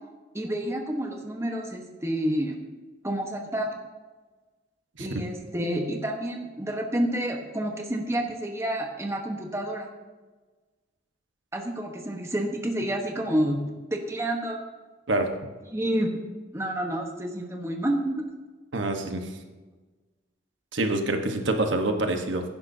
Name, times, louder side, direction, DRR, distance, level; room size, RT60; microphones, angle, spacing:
voice 1, 0.3-2.6 3.0-3.7 5.0-9.9 11.5-13.6 13.9-14.6 15.7-16.2 16.5-18.2, right 1 dB, 15° right, 2 dB, 1.1 m, -29 dB
voice 2, 18.7-19.3 20.7-22.4, right 2 dB, 75° right, 5 dB, 1.2 m, -26 dB
15.5 x 10.5 x 2.7 m, 1.3 s
head